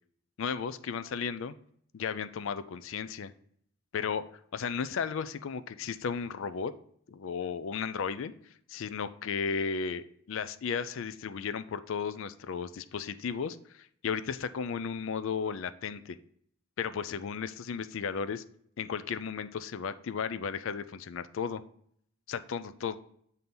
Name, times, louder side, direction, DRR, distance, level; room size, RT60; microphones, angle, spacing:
voice 1, 0.4-1.5 1.9-3.3 3.9-4.2 4.5-6.7 7.1-8.3 8.7-16.2 16.8-18.4 18.8-21.6 22.3-23.0, left 6 dB, 60° left, 13 dB, 0.4 m, -34 dB
7.7 x 2.8 x 5.2 m, 0.64 s
head